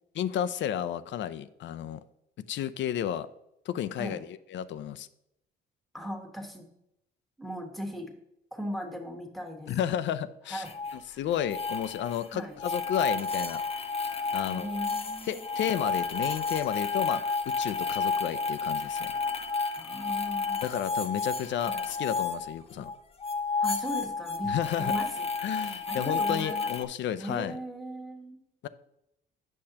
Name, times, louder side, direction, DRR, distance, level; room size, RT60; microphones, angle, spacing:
voice 1, 0.1-2.0 2.5-3.3 3.7-5.1 9.7-10.6 11.2-13.6 14.3-14.7 15.3-19.1 20.6-22.9 24.5-24.9 25.4-27.5 28.6-28.7, left 10 dB, 70° left, 13 dB, 0.5 m, -32 dB
voice 2, 5.9-6.7 7.4-8.1 8.5-9.7 10.5-10.7 11.1-11.2 12.3-12.5 14.4-15.4 19.7-20.7 21.7-21.9 23.6-25.3 25.9-26.7 27.2-28.4, equal, ahead, 2 dB, 1.4 m, -38 dB
sound 1, 10.6-11.0 11.3-12.2 12.6-22.9 23.2-26.8, left 4 dB, 30° left, 0.8 m, -31 dB
8.6 x 6.4 x 2.9 m, 0.80 s
cardioid pair, 90°, 20 cm